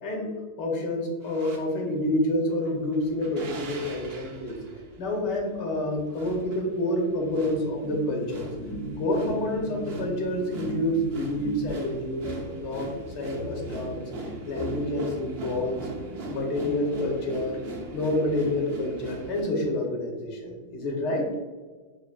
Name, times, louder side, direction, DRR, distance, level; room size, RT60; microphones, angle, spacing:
voice 1, 0.6-4.6 5.0-8.5 9.0-14.0 14.4-15.8 16.3-17.6 17.9-21.3, left 1 dB, 90° left, 0 dB, 1.6 m, -28 dB
sound 1, 1.2-1.6 2.5-19.4, right 2 dB, 60° right, 0.6 m, -40 dB
sound 2, 7.8-16.1, equal, 60° left, 0.9 m, -38 dB
6.7 x 2.5 x 2.4 m, 1.4 s
omnidirectional pair, 1.8 m